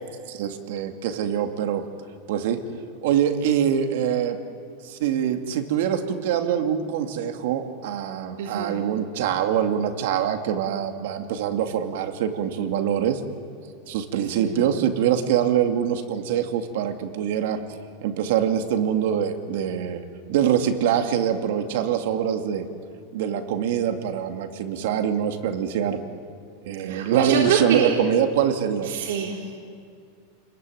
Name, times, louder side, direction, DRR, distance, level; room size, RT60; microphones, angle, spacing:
voice 1, 0.3-1.8 2.3-2.6 3.0-4.4 4.8-13.2 13.9-17.6 18.0-20.0 20.3-22.7 23.1-26.0 26.6-28.9, right 9 dB, 55° right, 6 dB, 2.4 m, -24 dB
voice 2, 8.4-8.8 14.1-14.6 26.9-27.9 28.8-29.5, right 6 dB, 75° right, -2 dB, 3.9 m, -26 dB
29.5 x 22.0 x 9.3 m, 2.3 s
supercardioid pair, 175°, 0 cm